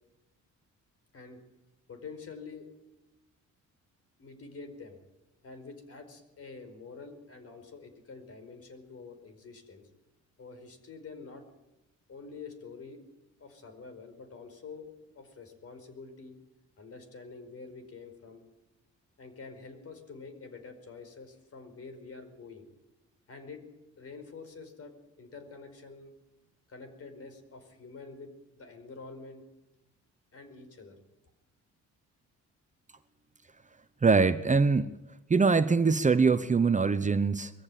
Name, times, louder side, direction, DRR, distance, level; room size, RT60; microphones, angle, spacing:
voice 1, 1.9-2.7 4.2-5.0 5.4-9.9 10.4-11.4 12.1-13.0 13.4-14.9 15.1-16.3 16.8-18.5 19.2-22.7 23.3-23.6 24.0-26.1 26.7-29.4 30.3-31.0, left 4 dB, 50° left, 8 dB, 5.0 m, -47 dB
voice 2, 34.0-34.9 35.3-37.5, right 4 dB, 25° right, 12 dB, 0.9 m, -23 dB
22.0 x 15.0 x 9.2 m, 0.95 s
cardioid pair, 90°, 30 cm